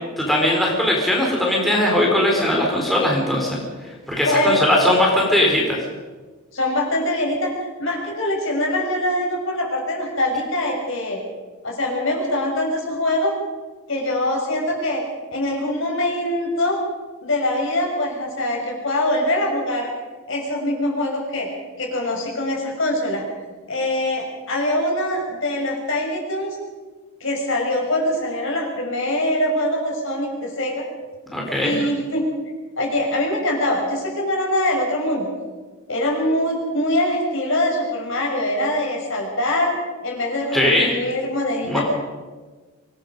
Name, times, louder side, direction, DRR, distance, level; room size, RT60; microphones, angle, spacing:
voice 1, 0.2-5.8 31.3-31.8 40.5-40.9 41.6-41.8, left 1 dB, ahead, -3 dB, 4.0 m, -19 dB
voice 2, 4.2-4.7 6.5-7.5 7.8-11.2 11.6-13.3 13.9-15.0 15.3-16.8 17.2-19.9 20.3-21.5 21.8-23.2 23.7-26.6 27.2-30.8 31.5-32.2 32.8-35.3 35.9-39.7 40.0-41.8, left 1 dB, 60° left, 0 dB, 6.3 m, -23 dB
25.0 x 19.5 x 5.3 m, 1.3 s
head